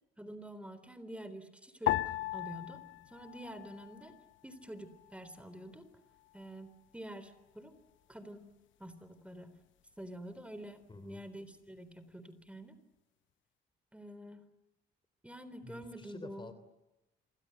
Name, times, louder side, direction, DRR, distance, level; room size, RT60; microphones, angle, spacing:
voice 1, 0.2-2.8 3.1-4.1 4.4-5.9 6.3-7.7 8.1-8.5 8.8-9.5 10.0-12.8 13.9-14.4 15.2-16.5, right 1 dB, 5° right, 12 dB, 3.8 m, -47 dB
sound 1, 1.9-4.4 4.6-5.5 6.2-6.6, left 15 dB, 75° left, 0.9 m, -37 dB
voice 2, 10.9-11.2 15.6-16.5, left 3 dB, 25° left, 12 dB, 3.0 m, -49 dB
27.0 x 25.0 x 8.2 m, 0.99 s
cardioid pair, 90°, 20 cm